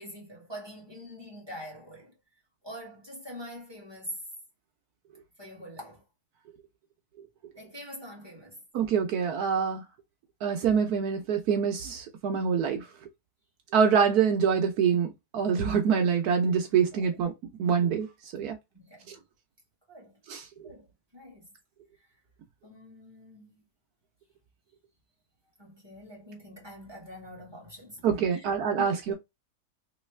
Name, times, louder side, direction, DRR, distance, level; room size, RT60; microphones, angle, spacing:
voice 1, 0.0-2.1 2.6-4.2 5.4-6.0 7.5-8.6 16.9-17.1 18.7-19.2 19.9-20.2 20.6-20.9 21.1-21.4 22.6-23.6 25.6-28.4 28.8-28.9, equal, 15° right, 1.5 m, -44 dB
voice 2, 8.7-9.8 10.4-12.8 13.7-17.3 17.6-18.1 18.3-18.6 19.1-19.2 20.3-20.4 28.0-29.1, right 7 dB, 80° right, 1.2 m, -25 dB
3.2 x 3.1 x 3.2 m
omnidirectional pair, 1.6 m